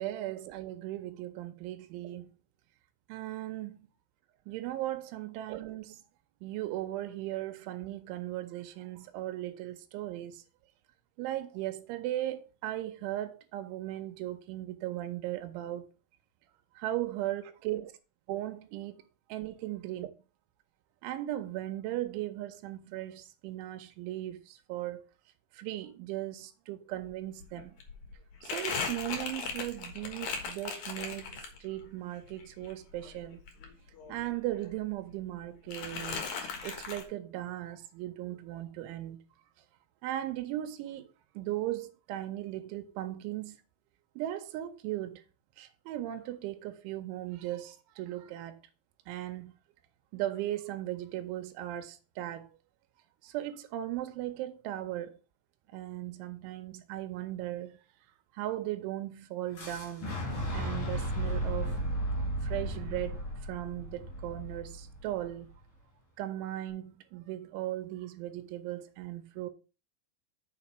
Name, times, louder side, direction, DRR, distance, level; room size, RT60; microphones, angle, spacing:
voice 1, 0.0-2.3 3.1-3.9 4.5-6.0 6.4-10.4 11.2-15.9 16.8-17.9 18.3-19.0 19.3-20.1 21.0-25.0 25.5-27.8 28.4-33.4 34.1-39.2 40.0-43.6 44.2-45.2 45.6-48.6 49.1-49.5 50.1-52.5 53.2-55.2 55.7-57.8 58.3-60.2 60.5-61.8 62.4-65.5 66.2-69.5, right 14 dB, 80° right, 3.0 m, -37 dB
Crumpling crinkling, 27.0-27.1 27.4-31.8 32.2-34.4 34.6-35.4 35.7-37.0, left 5 dB, 80° left, 1.7 m, -38 dB
Fire / Explosion, 59.5-65.4, right 1 dB, 45° left, 2.2 m, -34 dB
6.7 x 5.2 x 5.9 m
omnidirectional pair, 5.9 m